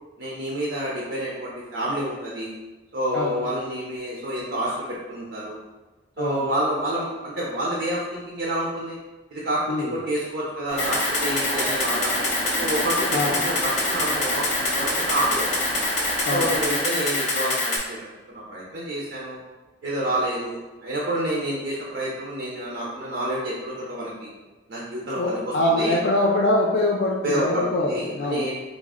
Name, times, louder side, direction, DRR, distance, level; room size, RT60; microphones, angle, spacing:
voice 1, 0.2-2.5 2.9-5.6 6.2-9.0 9.3-12.3 12.6-15.5 16.3-19.4 19.8-24.3 24.7-26.0 27.2-28.6, right 1 dB, 75° right, -5 dB, 0.6 m, -28 dB
sound 1, 10.7-16.8, right 1 dB, 15° right, 0.9 m, -33 dB
Camera, 10.8-17.8, left 2 dB, 40° left, 0.9 m, -25 dB
voice 2, 25.2-28.4, left 1 dB, 75° left, -4 dB, 0.4 m, -23 dB
3.7 x 2.0 x 3.5 m, 1.2 s
head